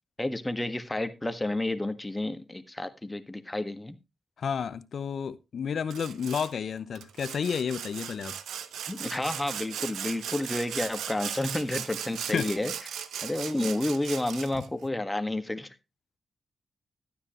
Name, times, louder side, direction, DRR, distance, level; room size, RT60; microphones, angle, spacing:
voice 1, 0.2-4.0 8.9-12.7 13.2-15.7, left 1 dB, 15° left, 1.5 m, -30 dB
voice 2, 4.4-8.3 12.3-12.5 14.5-14.6, left 7 dB, 65° left, 0.8 m, -31 dB
Sawing, 5.9-6.5 7.0-14.7, right 9 dB, 85° right, 0.8 m, -37 dB
12.5 x 9.6 x 3.0 m
supercardioid pair, 50°, 0 cm